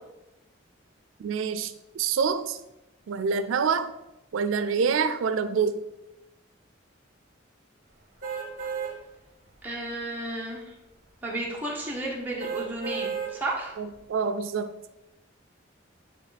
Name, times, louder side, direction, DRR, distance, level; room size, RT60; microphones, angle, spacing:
voice 1, 1.2-2.6 3.1-3.9 4.3-5.8 13.8-14.7, right 5 dB, 90° right, 11 dB, 0.4 m, -26 dB
sound 1, 8.2-8.9 9.5-9.6 12.4-13.3 13.9-14.0, right 6 dB, 45° right, 1.3 m, -32 dB
voice 2, 9.6-10.6 11.2-13.8, right 2 dB, 10° right, -4 dB, 1.3 m, -33 dB
9.1 x 3.5 x 4.1 m, 0.94 s
head